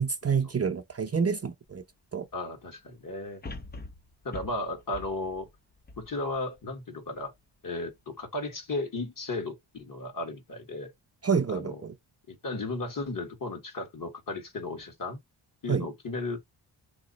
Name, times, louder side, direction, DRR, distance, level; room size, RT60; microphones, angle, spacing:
voice 1, 0.0-1.8 2.1-2.3 11.2-11.9 15.7-15.9, right 6 dB, 30° right, 0.7 m, -28 dB
sound 1, 1.7-1.8 3.4-6.7 7.2-7.3, left 3 dB, 20° left, 0.5 m, -43 dB
voice 2, 2.3-3.4 4.2-5.5 6.0-7.3 7.6-10.9 11.5-11.8 12.3-15.2 15.6-16.4, left 2 dB, 45° left, 1.6 m, -35 dB
3.0 x 2.4 x 4.0 m
cardioid pair, 60°, 48 cm